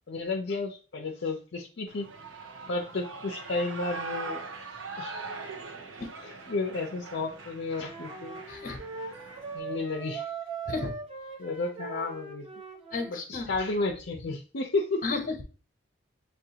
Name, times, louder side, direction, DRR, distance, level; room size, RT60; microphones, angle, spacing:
voice 1, 0.1-2.1 2.7-4.4 5.0-5.3 5.6-5.8 6.2-8.4 9.5-10.3 11.4-12.5 13.1-15.0, left 3 dB, 60° left, 0 dB, 0.5 m, -32 dB
Shout / Cheering, 1.9-9.6, right 3 dB, 85° right, 0.6 m, -41 dB
Wind instrument woodwind instrument, 7.8-13.2, right 4 dB, 30° right, 1.0 m, -40 dB
voice 2, 8.5-8.8 10.7-10.9 12.9-13.5 15.0-15.4, left 3 dB, 45° left, 4 dB, 0.9 m, -33 dB
7.1 x 2.5 x 2.8 m, 0.37 s
head